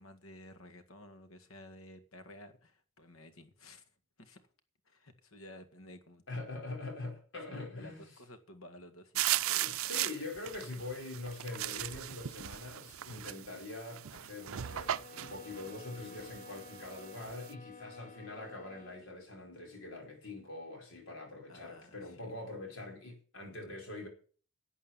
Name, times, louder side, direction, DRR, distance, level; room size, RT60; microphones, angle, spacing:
voice 1, 0.0-3.9 4.2-4.4 4.9-6.5 7.7-10.0 21.5-22.3, left 1 dB, 90° left, 2.0 m, -54 dB
voice 2, 6.3-8.0 9.5-24.1, left 2 dB, 65° left, 4.7 m, -44 dB
sound 1, 9.1-17.5, right 13 dB, 85° right, 0.5 m, -37 dB
sound 2, 14.3-19.1, left 3 dB, 35° left, 1.1 m, -53 dB
11.5 x 8.4 x 7.3 m
head